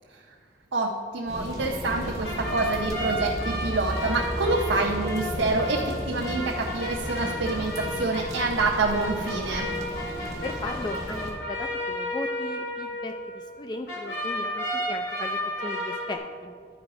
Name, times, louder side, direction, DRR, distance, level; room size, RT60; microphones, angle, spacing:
voice 1, 0.7-9.7, right 3 dB, 70° right, -1 dB, 0.7 m, -27 dB
sound 1, 1.3-11.3, equal, 20° right, 2.5 m, -34 dB
sound 2, 1.6-13.6 13.9-16.2, equal, 65° left, 2.0 m, -33 dB
voice 2, 10.4-16.5, left 2 dB, 25° left, 5 dB, 0.3 m, -37 dB
11.5 x 4.8 x 4.9 m, 2.2 s
head